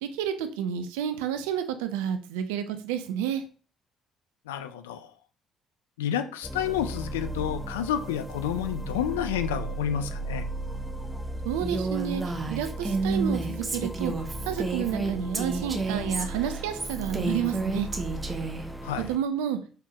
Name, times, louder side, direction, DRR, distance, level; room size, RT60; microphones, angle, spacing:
voice 1, 0.0-3.4 11.4-12.2 12.5-14.1 14.5-17.9 19.0-19.6, right 9 dB, 80° right, 9 dB, 0.4 m, -30 dB
voice 2, 4.5-5.1 6.0-10.5 18.8-19.1, left 9 dB, 85° left, 10 dB, 0.3 m, -30 dB
sound 1, 6.4-19.2, right 2 dB, ahead, 0.5 m, -36 dB
Female speech woman speaking, 11.6-18.6, right 3 dB, 30° right, 0.9 m, -30 dB
4.4 x 3.7 x 2.8 m, 0.40 s
hypercardioid pair, 50°, 0 cm